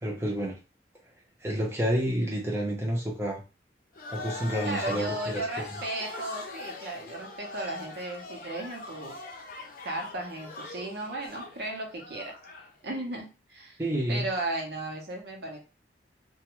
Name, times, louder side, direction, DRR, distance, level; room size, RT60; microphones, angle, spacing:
voice 1, 0.0-0.6 1.4-3.4 4.1-5.6 13.8-14.2, equal, 15° right, -3 dB, 0.7 m, -29 dB
sound 1, 4.0-12.7, left 3 dB, 50° left, 0.6 m, -41 dB
voice 2, 4.6-9.1 9.8-12.3 12.8-13.8 14.1-15.6, right 2 dB, 65° right, 1 dB, 0.8 m, -35 dB
2.5 x 2.3 x 3.0 m, 0.31 s
head